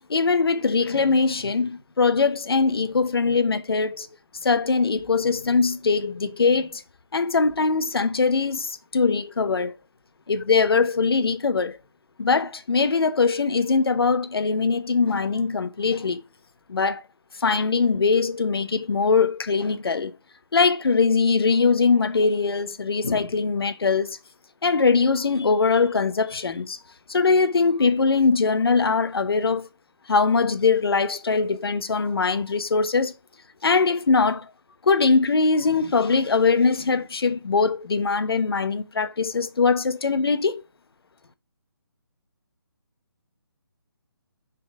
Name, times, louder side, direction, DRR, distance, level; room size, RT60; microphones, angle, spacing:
voice 1, 0.1-4.1 4.4-6.8 7.1-9.7 10.3-11.8 12.2-16.2 16.7-17.0 17.4-20.1 20.5-24.2 24.6-26.8 27.1-29.7 30.1-33.1 33.6-34.5 34.8-40.6, left 4 dB, 75° left, 0.9 m, -21 dB
5.5 x 4.0 x 5.3 m
figure-of-eight pair, 155°, 13 cm